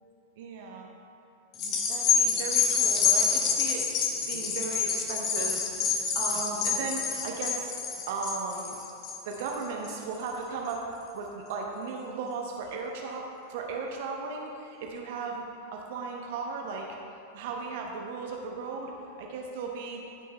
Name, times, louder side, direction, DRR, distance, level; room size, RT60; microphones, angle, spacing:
voice 1, 0.4-0.9 1.6-3.9 4.3-5.7 6.1-7.7 8.1-8.8 9.2-10.9 11.1-15.4 15.7-17.0 17.3-18.9 19.2-20.1, right 4 dB, 50° right, 0 dB, 0.9 m, -36 dB
sound 1, 1.5-10.2 10.7-10.8, left 6 dB, 35° left, 1.1 m, -27 dB
14.5 x 5.7 x 3.2 m, 2.6 s
figure-of-eight pair, 90°, 0 cm